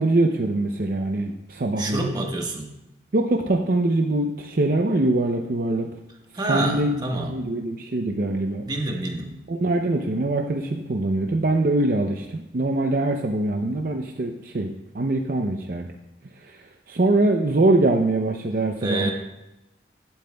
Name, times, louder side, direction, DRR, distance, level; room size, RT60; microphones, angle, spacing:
voice 1, 0.0-2.0 3.1-5.9 6.5-7.0 7.3-8.6 9.5-15.9 16.9-19.1, right 2 dB, 55° right, 3 dB, 0.6 m, -23 dB
voice 2, 1.8-2.7 6.3-7.3 8.7-9.3 18.8-19.1, right 2 dB, 25° right, 1 dB, 1.3 m, -27 dB
15.5 x 8.9 x 2.3 m, 0.96 s
head